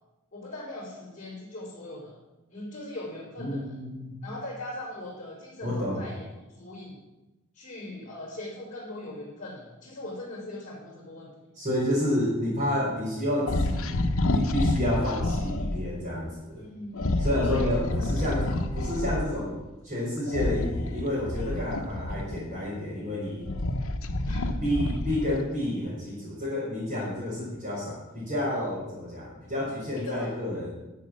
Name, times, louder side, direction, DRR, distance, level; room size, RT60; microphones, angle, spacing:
voice 1, 0.3-2.2 2.5-3.8 4.2-6.3 6.6-7.0 7.5-11.3 16.6-18.2 24.2-24.5 30.0-30.3, left 1 dB, 35° left, -10 dB, 4.3 m, -40 dB
voice 2, 3.4-4.1 5.6-6.0 11.5-16.6 17.2-18.5 18.7-23.5 24.5-30.7, left 1 dB, 35° right, -10 dB, 4.6 m, -30 dB
sound 1, 13.5-15.8 16.9-19.3 20.3-22.6 23.1-25.5, left 1 dB, 75° left, 0.9 m, -28 dB
12.0 x 6.6 x 7.5 m, 1.1 s
head